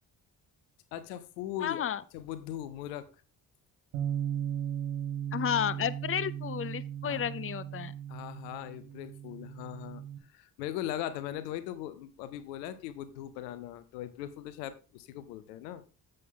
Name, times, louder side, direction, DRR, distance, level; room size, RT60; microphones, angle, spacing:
voice 1, 0.9-1.8 2.1-3.1 7.0-7.3 8.1-10.0 10.3-15.8, left 12 dB, 90° left, 13 dB, 0.8 m, -39 dB
voice 2, 1.6-2.0 5.3-7.9, left 9 dB, 30° left, 17 dB, 0.6 m, -32 dB
Bass guitar, 3.9-10.2, right 10 dB, 75° right, 1.7 m, -37 dB
7.7 x 7.6 x 3.8 m, 0.33 s
hypercardioid pair, 45°, 47 cm